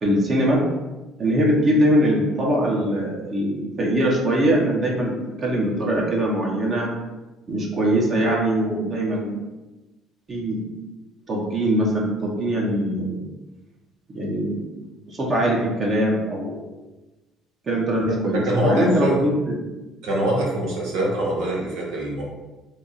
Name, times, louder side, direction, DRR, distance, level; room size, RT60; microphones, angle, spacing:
voice 1, 0.0-0.6 1.2-6.9 7.5-9.3 10.3-10.6 11.3-13.2 14.1-14.6 15.1-16.7 17.7-19.6, right 1 dB, 40° right, -3 dB, 1.1 m, -22 dB
voice 2, 18.3-19.2 20.0-22.2, right 1 dB, 75° right, -3 dB, 1.1 m, -24 dB
3.4 x 2.3 x 4.3 m, 1.1 s
hypercardioid pair, 65°, 0 cm